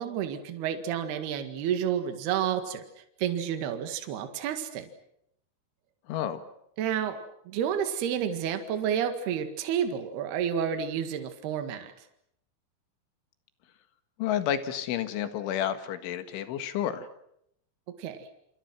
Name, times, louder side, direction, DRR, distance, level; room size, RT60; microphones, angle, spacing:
voice 1, 0.0-2.8 3.2-4.9 6.8-7.2 7.5-11.9 18.0-18.3, right 9 dB, 65° right, 7 dB, 3.6 m, -30 dB
voice 2, 6.1-6.4 14.2-17.1, left 10 dB, 85° left, 10 dB, 4.1 m, -30 dB
28.5 x 27.0 x 6.1 m, 0.74 s
omnidirectional pair, 5.4 m